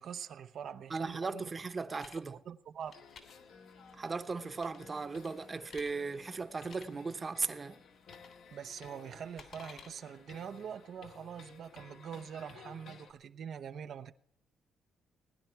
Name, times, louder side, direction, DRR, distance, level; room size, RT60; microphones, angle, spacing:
voice 1, 0.0-1.5 2.3-3.0 8.5-14.1, right 8 dB, 65° right, 0.7 m, -44 dB
voice 2, 0.9-2.4 3.9-7.8, right 4 dB, 30° right, 0.9 m, -37 dB
sound 1, 1.5-2.2 2.8-3.2 4.6-4.9 5.2-5.9 6.6-6.9 8.1-8.4 8.7-9.9, left 6 dB, 60° left, 3.1 m, -53 dB
sound 2, 2.9-13.1, left 5 dB, 75° left, 1.8 m, -55 dB
19.5 x 10.0 x 4.5 m
cardioid pair, 90°, 0 cm